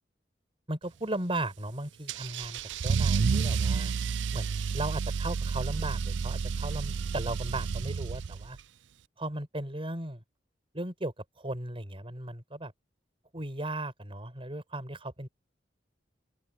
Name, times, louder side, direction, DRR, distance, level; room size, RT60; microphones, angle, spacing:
voice 1, 0.7-3.9 4.3-8.6 9.2-10.2 10.7-12.7 13.3-15.3, right 1 dB, 30° right, 5.4 m, -36 dB
Car / Engine starting / Accelerating revving vroom, 2.1-8.6, right 5 dB, 75° right, 0.5 m, -30 dB
open air
head